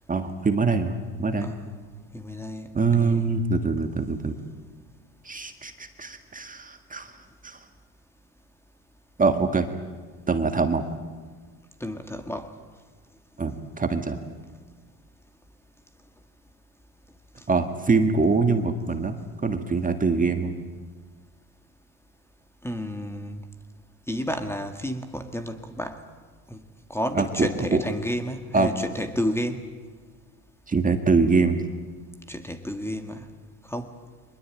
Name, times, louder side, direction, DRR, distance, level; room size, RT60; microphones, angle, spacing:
voice 1, 0.1-1.5 2.7-4.4 5.2-7.2 7.4-7.6 9.2-9.7 10.3-10.8 13.4-14.2 17.5-19.2 19.4-20.6 27.1-27.8 28.5-28.7 30.7-31.7, right 4 dB, 20° right, 7 dB, 1.8 m, -24 dB
voice 2, 2.1-2.7 3.0-3.3 11.8-12.5 22.6-23.4 24.1-26.0 26.5-26.6 26.9-29.6 32.3-33.3 33.7-33.9, equal, 5° left, 7 dB, 1.9 m, -31 dB
24.0 x 21.0 x 9.0 m, 1.5 s
supercardioid pair, 110°, 43 cm